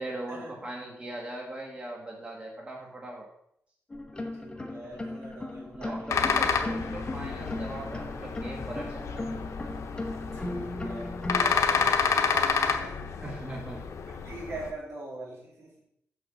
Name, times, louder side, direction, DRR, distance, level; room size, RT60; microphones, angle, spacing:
voice 1, 0.0-3.3 5.7-9.4 13.2-13.8, right 1 dB, 25° right, -2 dB, 1.4 m, -39 dB
sound 1, 3.9-11.5, left 1 dB, 20° left, 1.0 m, -37 dB
voice 2, 4.3-6.4 10.3-13.8 14.2-15.7, right 2 dB, 70° right, -5 dB, 3.6 m, -43 dB
sound 2, 6.1-14.7, left 6 dB, 75° left, 0.8 m, -29 dB
6.6 x 5.5 x 7.1 m, 0.73 s
wide cardioid pair, 160°, 5 cm